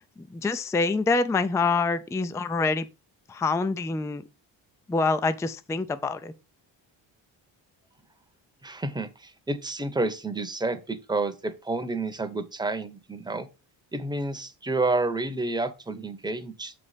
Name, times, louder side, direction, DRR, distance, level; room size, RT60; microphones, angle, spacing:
voice 1, 0.3-2.9 3.3-4.2 4.9-6.3, left 3 dB, 5° left, 0.4 m, -26 dB
voice 2, 8.6-13.5 13.9-16.7, right 2 dB, 10° right, 0.8 m, -29 dB
6.9 x 4.2 x 4.9 m
cardioid pair, 110°, 46 cm